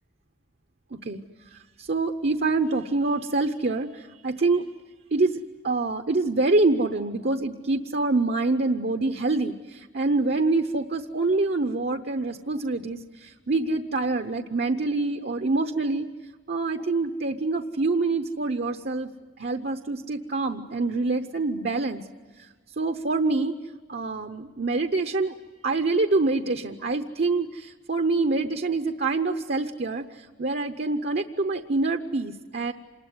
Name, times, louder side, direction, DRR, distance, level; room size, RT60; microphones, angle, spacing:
voice 1, 1.9-4.6 5.1-16.1 16.5-19.1 19.4-22.0 22.8-23.5 23.9-25.3 25.6-30.0 30.4-32.7, right 3 dB, 55° right, 6 dB, 0.8 m, -26 dB
27.0 x 20.5 x 9.7 m, 1.4 s
head